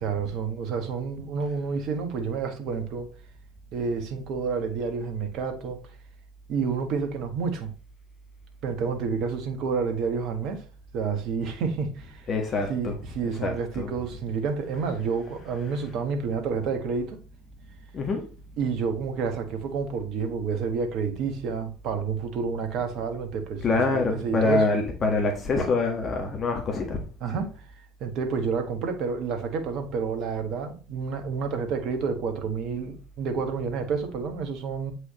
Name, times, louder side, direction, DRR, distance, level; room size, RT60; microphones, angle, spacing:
voice 1, 0.0-3.1 3.7-5.8 6.5-7.7 8.6-10.6 10.9-12.2 12.7-17.2 18.6-24.6 27.2-27.5 28.0-34.9, right 5 dB, 55° right, 1.3 m, -29 dB
voice 2, 12.3-12.9 13.4-13.9 17.9-18.2 23.6-27.0, left 3 dB, 40° left, 1.5 m, -25 dB
8.2 x 4.9 x 3.0 m
figure-of-eight pair, 60°, 0 cm